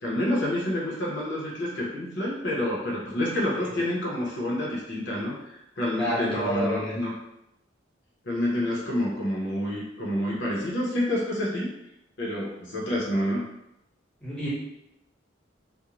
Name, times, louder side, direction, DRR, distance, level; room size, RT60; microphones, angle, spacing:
voice 1, 0.0-7.1 8.3-11.7 12.2-13.4, left 1 dB, 65° left, -4 dB, 0.7 m, -28 dB
voice 2, 6.0-7.0 14.2-14.5, equal, 5° left, -8 dB, 0.8 m, -29 dB
2.5 x 2.0 x 2.9 m, 0.86 s
head